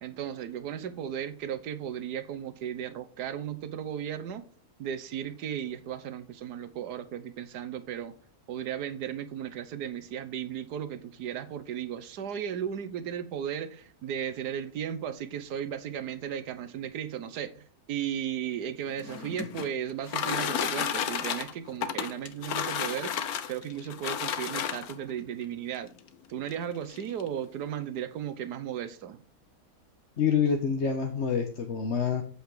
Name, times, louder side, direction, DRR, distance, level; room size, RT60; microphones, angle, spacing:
voice 1, 0.0-4.4 4.8-8.1 8.5-25.9 26.3-29.2, right 9 dB, 85° right, 1.5 m, -35 dB
sound 1, 18.9-25.1 26.0-26.1 26.5-26.6 26.9-27.3, left 8 dB, 70° left, 1.4 m, -32 dB
voice 2, 30.2-32.2, left 6 dB, 50° left, 1.3 m, -27 dB
8.5 x 8.2 x 4.8 m
omnidirectional pair, 1.7 m